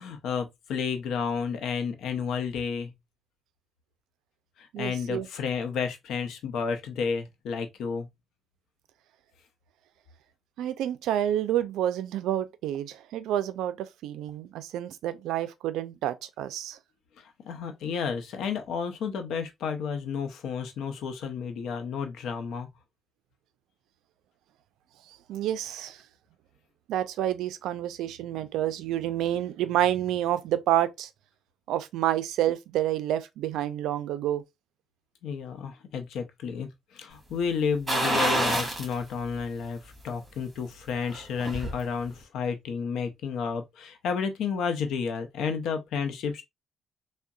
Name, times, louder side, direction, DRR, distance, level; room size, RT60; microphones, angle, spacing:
voice 1, 0.0-2.9 4.6-8.1 17.2-22.7 35.2-46.4, left 6 dB, 80° left, 0.6 m, -31 dB
voice 2, 4.7-5.3 10.6-16.8 25.3-26.0 26.9-31.1 31.7-34.4, right 12 dB, 90° right, 0.3 m, -29 dB
sound 1, 37.9-38.9 39.4-39.5 41.0-41.8 42.1-42.2, right 1 dB, 20° right, 1.5 m, -27 dB
3.7 x 2.1 x 2.3 m
cardioid pair, 90°, 0 cm